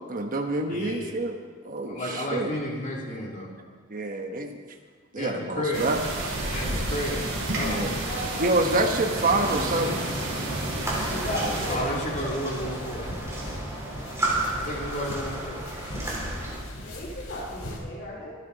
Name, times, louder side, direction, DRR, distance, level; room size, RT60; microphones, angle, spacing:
voice 1, 0.0-1.4 1.6-2.5 3.9-4.6 5.1-6.0 7.7-7.9 8.4-10.0 16.2-16.3, right 2 dB, 40° right, 3 dB, 1.1 m, -27 dB
voice 2, 0.7-1.1 1.9-3.5 5.1-5.8 6.5-7.8 10.9-13.0 14.5-15.6, left 1 dB, 35° left, -2 dB, 2.8 m, -32 dB
sound 1, 5.7-11.8, right 1 dB, 65° right, 4.5 m, -31 dB
voice 3, 7.5-8.4 8.7-8.8 9.5-9.6 11.1-12.7 16.7-18.4, equal, 55° left, -6 dB, 3.9 m, -35 dB
sound 2, 9.1-16.6, right 1 dB, 15° right, 3.9 m, -33 dB
sound 3, 10.8-17.8, left 1 dB, 80° left, 4.0 m, -39 dB
25.0 x 9.9 x 4.0 m, 1.5 s
head